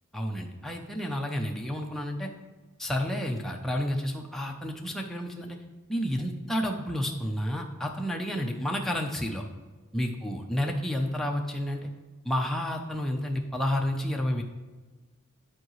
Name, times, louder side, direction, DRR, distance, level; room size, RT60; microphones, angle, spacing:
voice 1, 0.1-2.3 2.8-5.6 5.9-9.5 9.9-11.9 12.2-14.4, equal, ahead, 0 dB, 0.6 m, -30 dB
10.5 x 4.8 x 3.1 m, 1.3 s
head